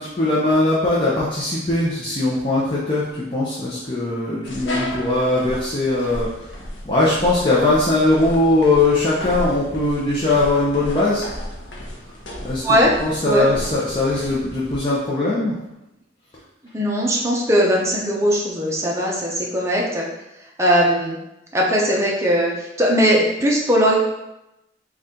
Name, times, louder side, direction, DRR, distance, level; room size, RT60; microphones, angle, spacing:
voice 1, 0.0-6.5 6.8-11.3 12.4-12.6 13.0-15.6, left 2 dB, 25° left, -7 dB, 0.6 m, -20 dB
sound 1, 4.4-14.8, equal, 80° left, 0.8 m, -34 dB
voice 2, 12.6-12.9 13.2-13.5 16.7-20.1 20.6-21.2 21.5-23.9, equal, 15° right, -3 dB, 0.7 m, -19 dB
4.1 x 2.4 x 3.7 m, 0.91 s
head